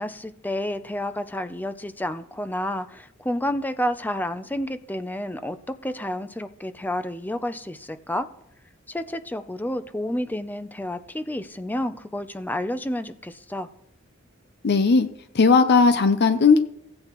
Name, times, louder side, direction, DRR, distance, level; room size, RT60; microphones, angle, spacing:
voice 1, 0.0-5.6 5.8-8.3 8.9-13.7, left 1 dB, 10° left, 0.5 m, -30 dB
voice 2, 14.6-15.1 15.3-16.6, left 4 dB, 55° left, 0.6 m, -17 dB
16.0 x 8.6 x 3.0 m
head